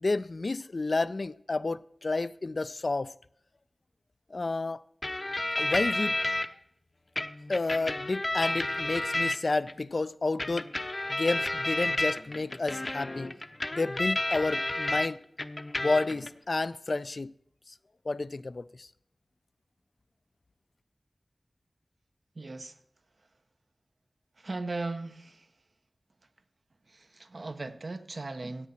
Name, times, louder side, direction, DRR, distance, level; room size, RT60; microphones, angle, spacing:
voice 1, 0.0-3.1 4.3-4.8 5.6-6.2 7.5-10.7 11.1-13.3 13.7-15.2 15.8-17.3 18.1-18.9, left 3 dB, 60° left, 0.3 m, -30 dB
sound 1, 5.0-6.5 7.2-9.7 10.4-15.1 15.4-16.3, left 1 dB, 40° left, 0.7 m, -31 dB
voice 2, 22.4-22.8 24.4-25.5 26.9-28.7, right 3 dB, 65° right, 0.8 m, -38 dB
15.5 x 8.2 x 4.2 m
wide cardioid pair, 60°, 0 cm